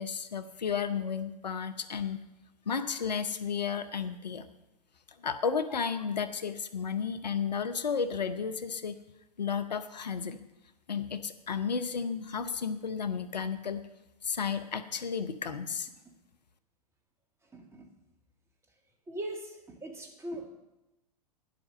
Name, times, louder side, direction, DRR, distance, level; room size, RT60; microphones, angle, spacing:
voice 1, 0.0-2.2 2.7-4.4 5.2-9.0 9.4-10.4 10.9-13.8 14.2-15.9, left 6 dB, 85° left, 11 dB, 0.8 m, -33 dB
voice 2, 17.5-17.9 19.1-20.5, right 1 dB, 15° right, 2 dB, 1.9 m, -40 dB
10.0 x 7.9 x 6.4 m, 0.95 s
figure-of-eight pair, 105°, 21 cm